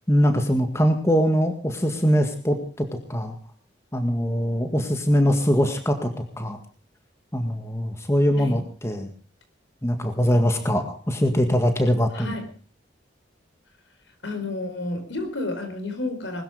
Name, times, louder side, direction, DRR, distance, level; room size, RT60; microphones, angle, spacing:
voice 1, 0.1-3.4 3.9-6.6 7.3-9.1 9.8-12.3, equal, 15° left, 6 dB, 1.9 m, -22 dB
voice 2, 12.1-12.5 14.2-16.4, left 2 dB, 80° left, 7 dB, 4.6 m, -31 dB
20.5 x 13.5 x 5.0 m, 0.37 s
head